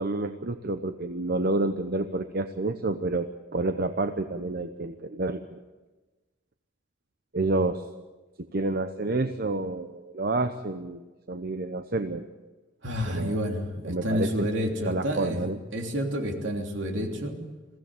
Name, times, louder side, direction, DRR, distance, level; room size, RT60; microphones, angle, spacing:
voice 1, 0.0-5.6 7.3-7.8 8.5-12.3 13.1-13.4 13.8-14.5 14.8-15.6, right 2 dB, 50° right, 8 dB, 0.9 m, -29 dB
voice 2, 12.8-17.4, equal, 70° right, 3 dB, 3.2 m, -29 dB
22.5 x 16.0 x 9.2 m, 1.2 s
head